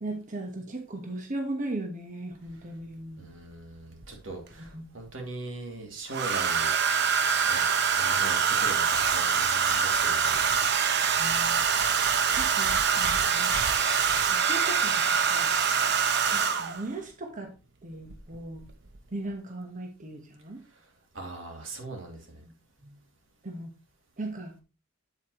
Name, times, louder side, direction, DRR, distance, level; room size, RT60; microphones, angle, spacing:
voice 1, 0.0-3.3 4.6-4.8 11.2-11.6 12.3-13.5 14.2-15.5 16.3-17.5 17.8-18.6 19.1-20.6 22.4-22.5 22.8-23.0 23.4-23.7 24.2-24.5, right 2 dB, 40° right, 3 dB, 1.3 m, -38 dB
Domestic sounds home sounds, 2.5-2.6 4.0-4.7 6.1-16.9 18.1-18.4 18.6-19.0, right 6 dB, 60° right, 0.9 m, -25 dB
voice 2, 3.2-7.1 7.4-7.6 7.9-10.5 21.1-22.4, right 2 dB, 85° right, 2 dB, 2.7 m, -40 dB
8.3 x 8.2 x 3.1 m, 0.30 s
head